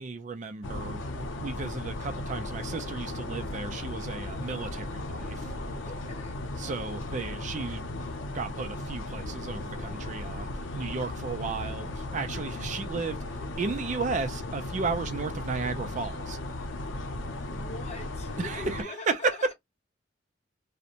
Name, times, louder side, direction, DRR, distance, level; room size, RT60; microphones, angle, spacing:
voice 1, 0.0-5.5 6.6-16.4 18.4-19.5, right 4 dB, 40° right, 0.4 m, -34 dB
sound 1, 0.6-18.8, left 2 dB, 90° left, 0.6 m, -36 dB
voice 2, 5.8-6.5 17.5-19.5, left 2 dB, 35° left, 0.8 m, -43 dB
2.5 x 2.1 x 2.9 m
head